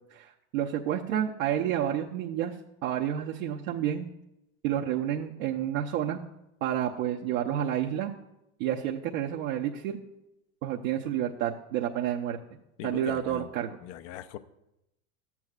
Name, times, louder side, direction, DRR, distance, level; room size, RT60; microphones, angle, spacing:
voice 1, 0.1-2.5 2.8-4.1 4.6-6.2 6.6-8.1 8.6-10.0 10.6-12.4 12.8-13.8, right 10 dB, 65° right, -1 dB, 0.8 m, -30 dB
voice 2, 12.8-13.5 13.8-14.4, left 11 dB, 60° left, 12 dB, 0.7 m, -40 dB
13.5 x 8.4 x 2.4 m, 0.88 s
hypercardioid pair, 85°, 44 cm